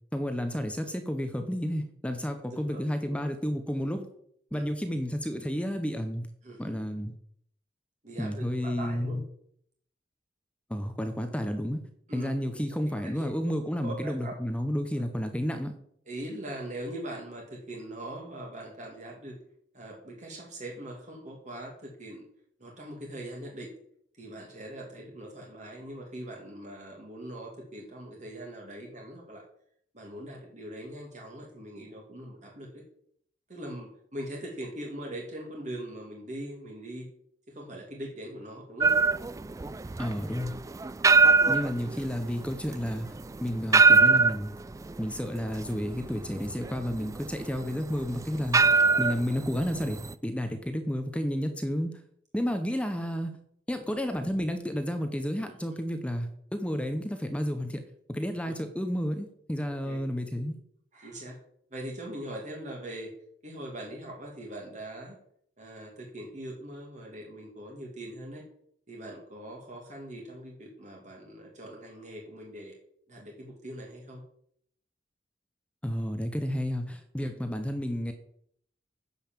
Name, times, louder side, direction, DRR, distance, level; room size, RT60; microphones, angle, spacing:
voice 1, 0.1-4.1 4.5-6.3 6.6-7.1 8.2-9.2 10.7-11.8 12.1-15.7 40.0-40.6 41.4-43.1 43.4-44.6 45.0-48.6 49.0-51.9 52.3-53.3 53.7-57.8 58.1-60.6 75.8-78.1, equal, 5° left, 7 dB, 0.8 m, -31 dB
voice 2, 2.5-3.2 4.5-4.6 6.4-6.7 8.0-9.2 12.1-12.3 13.2-13.3 13.8-14.3 14.9-15.0 16.1-19.4 19.7-22.2 22.6-23.7 24.1-29.4 29.9-32.7 33.5-37.1 37.5-39.0 40.6-40.7 55.7-55.8 58.5-58.6 59.6-60.0 60.9-61.4 61.7-63.1 63.4-65.2 65.6-68.4 68.9-72.7 73.1-74.2 77.2-77.3, right 1 dB, 45° right, -1 dB, 2.3 m, -41 dB
sound 1, 38.8-50.1, right 4 dB, 20° right, 0.3 m, -24 dB
10.0 x 5.7 x 7.3 m, 0.68 s
head